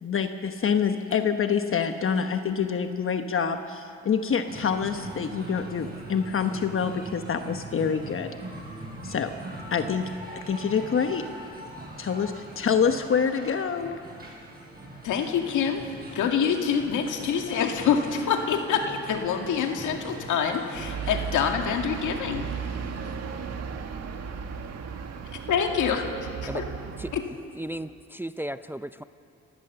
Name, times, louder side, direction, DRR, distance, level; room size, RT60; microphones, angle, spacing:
voice 1, 0.0-8.3 9.0-9.3 9.7-10.1 10.5-11.2 12.0-14.0, left 6 dB, 45° left, 7 dB, 1.1 m, -26 dB
sound 1, 4.5-21.5, right 1 dB, 30° right, 6.9 m, -41 dB
voice 2, 15.0-15.8 16.1-22.5 25.5-26.1 26.4-26.6 27.1-27.2, left 7 dB, 80° left, 3 dB, 2.2 m, -26 dB
sound 2, 20.7-27.2, right 6 dB, 60° right, 1.7 m, -35 dB
voice 3, 27.6-29.0, right 1 dB, 5° right, 12 dB, 0.5 m, -35 dB
27.5 x 15.5 x 6.9 m, 2.5 s
cardioid pair, 90°, 30 cm